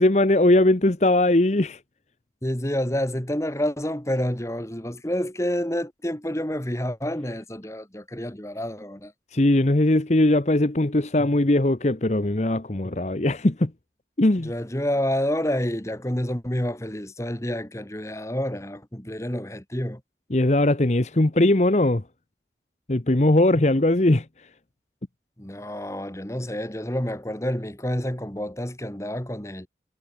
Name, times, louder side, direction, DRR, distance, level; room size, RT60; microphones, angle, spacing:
voice 1, 0.0-1.8 9.3-13.7 14.2-14.5 20.3-22.0 22.9-24.2, left 1 dB, 40° left, 1.0 m, -20 dB
voice 2, 2.4-9.1 14.4-20.0 25.4-29.7, equal, 15° left, 1.9 m, -28 dB
head